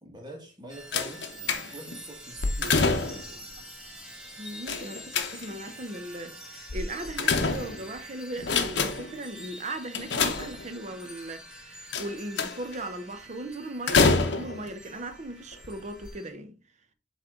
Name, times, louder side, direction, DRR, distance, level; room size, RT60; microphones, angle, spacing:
voice 1, 0.0-3.3, right 1 dB, 25° right, 1.7 m, -45 dB
sound 1, 0.7-16.3, right 1 dB, 5° right, 1.3 m, -46 dB
sound 2, 0.9-2.0 2.4-3.4 4.7-5.7 6.7-8.0 8.4-9.2 9.9-10.9 11.9-12.7 13.9-14.7 15.5-15.7 16.0-16.1, left 4 dB, 75° left, 0.9 m, -26 dB
voice 2, 4.4-16.6, right 1 dB, 40° right, 0.8 m, -38 dB
7.6 x 3.3 x 3.7 m
head